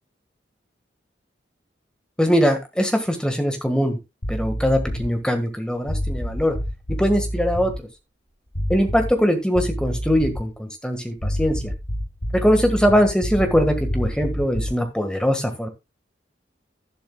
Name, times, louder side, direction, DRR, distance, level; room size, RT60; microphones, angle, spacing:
voice 1, 2.2-4.0 4.3-6.6 7.0-7.9 8.7-11.7 12.3-15.7, equal, 5° left, 5 dB, 1.6 m, -21 dB
sound 1, 4.2-5.2 5.8-7.8 8.5-9.3 9.6-10.5 11.2-14.8, equal, 50° left, 2.5 m, -28 dB
12.0 x 11.0 x 2.3 m, 0.24 s
head